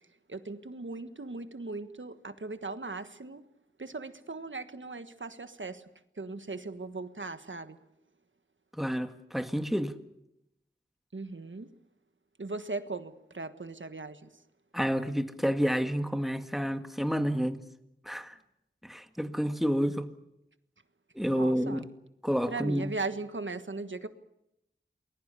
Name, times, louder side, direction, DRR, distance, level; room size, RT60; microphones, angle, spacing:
voice 1, 0.3-3.4 3.8-5.8 6.2-7.8 11.1-11.7 12.4-14.3 21.3-21.9 22.5-24.1, right 3 dB, 75° right, 10 dB, 1.5 m, -38 dB
voice 2, 8.7-9.9 14.7-17.6 18.1-18.4 18.8-20.1 21.2-21.8 22.2-22.9, equal, ahead, 8 dB, 1.8 m, -29 dB
29.0 x 21.0 x 6.9 m, 0.84 s
wide cardioid pair, 50°, 20 cm